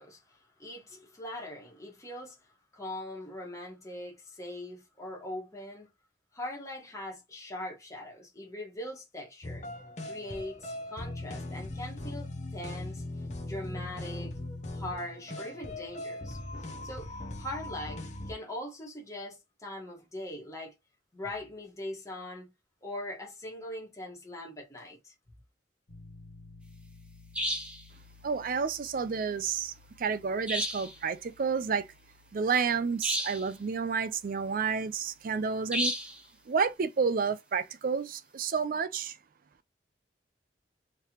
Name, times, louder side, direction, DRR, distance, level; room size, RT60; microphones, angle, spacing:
voice 1, 0.0-2.4 2.7-5.9 6.3-9.6 10.1-13.0 13.4-14.3 14.7-17.1 17.4-20.7 21.1-22.5 22.8-25.1, left 1 dB, 20° left, 1.3 m, -41 dB
sound 1, 9.4-18.3, left 2 dB, 40° left, 0.7 m, -39 dB
Piano, 25.9-36.7, left 3 dB, 85° left, 1.0 m, -57 dB
sound 2, 27.3-27.8 30.5-31.0 33.0-33.5 35.7-36.2, equal, 5° right, 0.6 m, -32 dB
voice 2, 28.2-31.9 32.3-35.9 36.5-39.2, right 5 dB, 50° right, 0.4 m, -30 dB
3.3 x 2.9 x 2.9 m
head